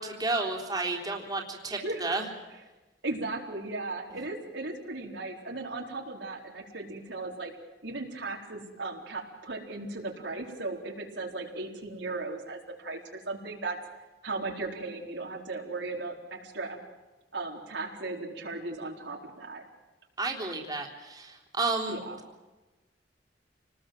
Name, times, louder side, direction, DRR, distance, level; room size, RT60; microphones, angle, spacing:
voice 1, 0.0-2.3 20.2-22.0, right 3 dB, 20° right, 0 dB, 3.6 m, -31 dB
voice 2, 1.7-2.1 3.0-7.5 7.8-13.0 13.3-13.8 14.2-16.8 17.3-19.6 21.9-22.2, right 3 dB, 75° right, 0 dB, 4.2 m, -36 dB
28.5 x 20.0 x 7.8 m, 1.1 s
head